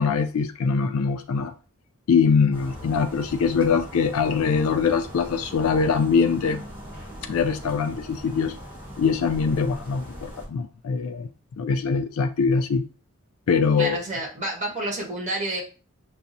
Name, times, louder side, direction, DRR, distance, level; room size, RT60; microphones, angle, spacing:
voice 1, 0.0-1.5 2.1-6.6 7.3-8.6 9.0-11.3 11.6-12.8 13.5-14.0, left 5 dB, 70° left, 0.4 m, -23 dB
sound 1, 2.5-10.5, equal, 10° right, 1.5 m, -40 dB
voice 2, 13.8-15.6, right 2 dB, 35° right, 1.2 m, -29 dB
5.7 x 2.0 x 2.6 m
head